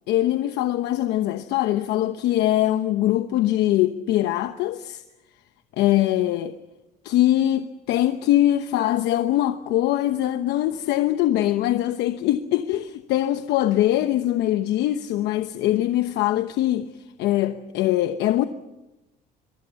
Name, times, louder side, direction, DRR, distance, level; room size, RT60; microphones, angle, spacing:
voice 1, 0.1-5.0 5.8-6.5 7.0-16.9 17.2-18.5, left 13 dB, 85° left, 1.0 m, -22 dB
25.5 x 23.0 x 7.1 m
cardioid pair, 110°, 17 cm